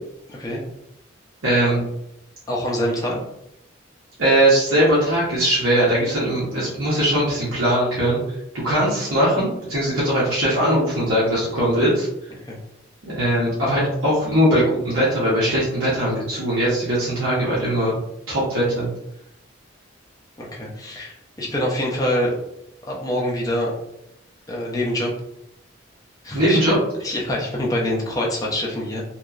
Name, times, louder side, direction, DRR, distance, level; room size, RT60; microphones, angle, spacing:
voice 1, 0.3-0.6 2.5-3.2 12.5-12.6 20.4-22.3 22.9-23.7 24.5-25.1 26.2-26.6 27.0-29.0, left 1 dB, 15° left, -3 dB, 0.4 m, -25 dB
voice 2, 1.4-1.8 4.2-12.1 13.0-17.9 18.3-18.9 26.3-26.8, right 1 dB, 90° right, -8 dB, 0.9 m, -20 dB
2.8 x 2.2 x 2.3 m, 0.81 s
head